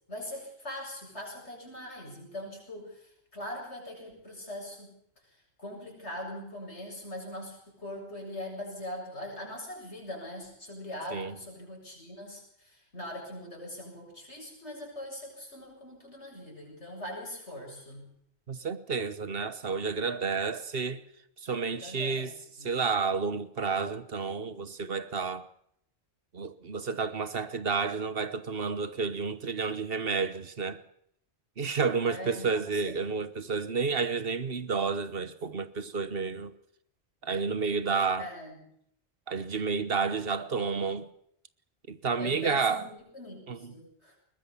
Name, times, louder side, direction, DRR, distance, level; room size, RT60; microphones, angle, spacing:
voice 1, 0.1-4.9 5.6-18.1 21.7-22.3 22.6-22.7 31.9-33.0 38.2-38.6 42.2-42.9 43.1-44.2, left 1 dB, 85° left, 8.1 m, -41 dB
voice 2, 18.5-21.0 21.4-22.3 22.6-25.5 26.3-30.8 31.6-36.5 37.2-38.3 39.3-41.1 41.9-42.9 43.5-43.7, right 5 dB, 60° right, 1.4 m, -30 dB
21.5 x 20.0 x 7.1 m
omnidirectional pair, 1.1 m